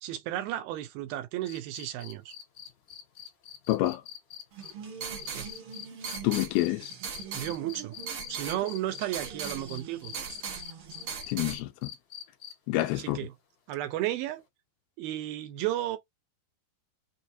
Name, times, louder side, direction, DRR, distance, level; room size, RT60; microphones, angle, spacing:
voice 1, 0.0-2.3 5.3-5.5 7.3-8.0 8.3-10.1 13.0-13.3 13.7-14.4 15.0-16.0, right 14 dB, 80° right, 2.4 m, -33 dB
sound 1, 1.4-9.0 9.4-12.7 14.4-14.5, left 11 dB, 60° left, 2.7 m, -45 dB
voice 2, 3.7-4.0 6.2-6.9 11.3-11.9 12.7-13.3, left 17 dB, 80° left, 2.5 m, -28 dB
sound 2, 4.5-11.6, right 6 dB, 65° right, 1.4 m, -39 dB
6.3 x 2.4 x 2.7 m
omnidirectional pair, 4.4 m